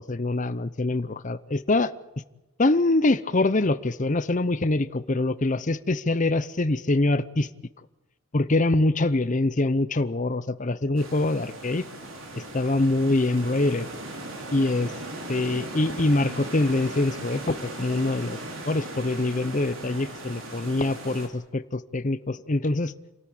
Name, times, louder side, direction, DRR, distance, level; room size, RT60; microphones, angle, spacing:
voice 1, 0.0-1.9 2.6-7.5 8.3-11.9 12.5-13.9 14.5-14.9 15.3-18.4 18.6-22.9, left 2 dB, 35° left, 14 dB, 0.7 m, -24 dB
sound 1, 11.0-21.3, right 2 dB, 65° right, 4.6 m, -38 dB
27.5 x 13.5 x 10.0 m, 1.0 s
head